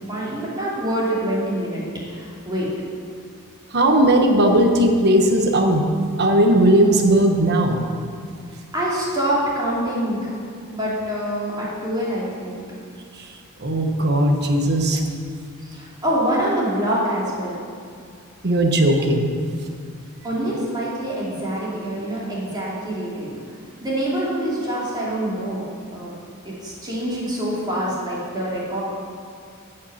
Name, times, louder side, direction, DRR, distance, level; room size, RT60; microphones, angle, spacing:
voice 1, 0.1-1.8 2.1-2.7 8.7-10.4 10.7-12.6 15.6-17.6 20.2-23.4 23.8-25.6 25.9-26.2 26.4-28.8, right 1 dB, 20° right, -7 dB, 2.6 m, -25 dB
voice 2, 3.7-5.9 6.2-7.8 13.6-15.0 18.4-19.3, right 1 dB, 50° right, 3 dB, 1.1 m, -17 dB
14.0 x 5.5 x 5.8 m, 2.2 s
head